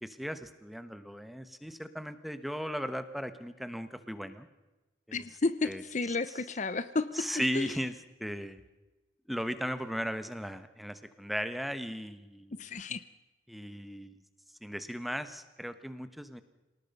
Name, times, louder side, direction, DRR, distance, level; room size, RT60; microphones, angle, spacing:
voice 1, 0.0-4.5 5.1-5.2 5.6-5.8 7.1-8.6 9.3-12.6 13.5-14.2 14.6-16.4, equal, ahead, 11 dB, 1.1 m, -37 dB
voice 2, 5.1-7.1 7.5-7.8 12.6-13.0, left 3 dB, 40° left, 14 dB, 0.7 m, -32 dB
27.0 x 18.0 x 5.4 m, 1.1 s
head